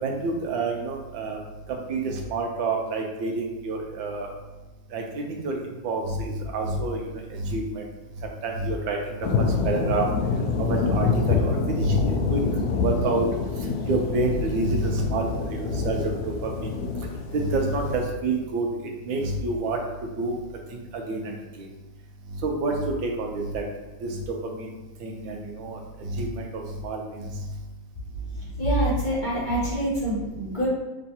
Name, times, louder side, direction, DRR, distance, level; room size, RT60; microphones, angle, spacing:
voice 1, 0.0-1.4 1.7-4.3 4.9-5.6 5.8-7.0 7.4-7.8 8.4-9.0 9.4-10.1 10.7-12.4 12.8-13.3 13.9-16.1 16.4-16.7 17.3-18.7 19.0-19.8 20.2-20.4 21.1-21.4 22.4-23.6 24.1-24.2 24.6-24.7 25.0-27.2, right 2 dB, 85° right, 1 dB, 1.5 m, -28 dB
sound 1, 9.2-18.0, left 4 dB, 75° left, 0.9 m, -26 dB
voice 2, 28.6-30.7, right 1 dB, 30° left, -9 dB, 1.1 m, -25 dB
5.3 x 3.1 x 2.8 m, 1.1 s
omnidirectional pair, 2.1 m